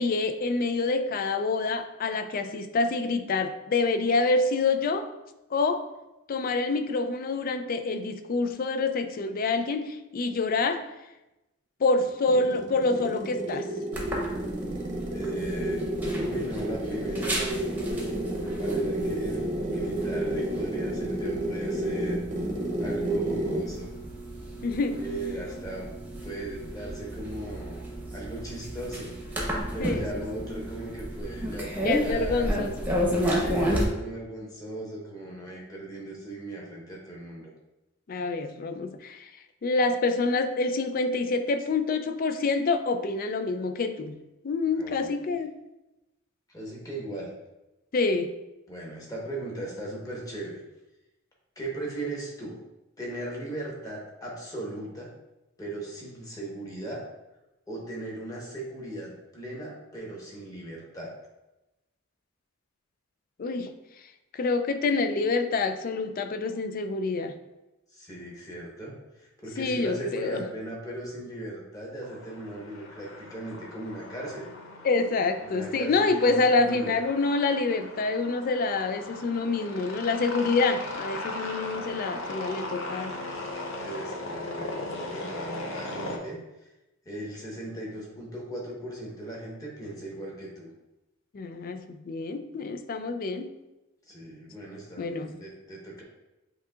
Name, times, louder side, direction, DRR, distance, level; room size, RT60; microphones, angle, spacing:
voice 1, 0.0-5.1 5.5-5.9 6.3-10.9 11.8-13.7 24.6-25.0 29.8-30.2 31.8-32.9 38.1-39.3 39.6-44.2 44.4-45.6 47.9-48.3 63.4-63.7 64.3-67.4 69.6-70.4 74.8-83.1 91.3-93.5 95.0-95.4, left 3 dB, 45° left, 9 dB, 0.4 m, -27 dB
sound 1, 12.0-23.8, right 1 dB, 40° right, 0.7 m, -31 dB
sound 2, 13.9-33.8, equal, 10° right, 0.9 m, -33 dB
voice 2, 15.1-15.8 16.1-17.4 17.9-18.0 18.4-19.4 19.7-22.2 22.8-23.9 25.0-25.9 26.2-27.8 28.1-29.1 29.7-32.5 33.3-37.5 44.8-45.2 46.5-47.3 48.7-50.6 51.6-52.6 53.0-55.1 55.6-57.0 57.7-61.1 67.9-74.5 75.4-77.0 83.8-86.4 87.0-90.7 94.1-96.0, right 1 dB, 20° left, -3 dB, 1.1 m, -38 dB
sound 3, 72.0-86.2, left 2 dB, 70° left, 0.7 m, -38 dB
8.1 x 2.7 x 2.4 m, 0.98 s
head